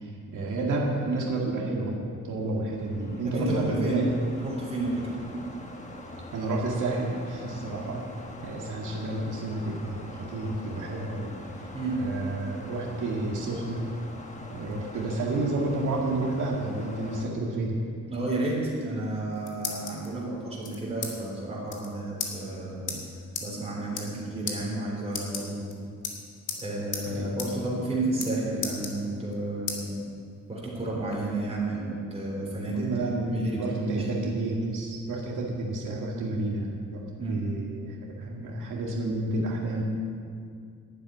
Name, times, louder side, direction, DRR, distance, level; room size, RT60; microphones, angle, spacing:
voice 1, 0.0-4.1 6.3-8.0 8.4-11.3 11.9-13.9 14.5-17.8 27.1-27.2 32.4-32.5 32.7-39.8, right 2 dB, 75° right, -2 dB, 1.9 m, -30 dB
sound 1, 2.2-17.2, left 2 dB, 25° left, 1.2 m, -44 dB
voice 2, 3.2-4.0 4.4-5.2 7.7-7.9 11.7-12.0 14.9-15.1 18.1-23.0 23.4-25.6 26.6-30.0 30.5-34.3 37.2-37.4, right 2 dB, 20° right, -4 dB, 3.7 m, -31 dB
sound 2, 19.1-20.1 20.6-21.1 21.4-21.5 21.7-21.9 22.2-22.3 22.9-23.0 23.4-23.5 23.8-24.2 24.5-24.6 25.1-25.7 26.0-26.6 26.9-27.1 27.4-27.5 27.8-28.3 28.6-29.3 29.7-29.8 30.3-31.2, left 6 dB, 70° left, 2.0 m, -34 dB
11.5 x 7.9 x 9.4 m, 2.2 s
wide cardioid pair, 170°, 31 cm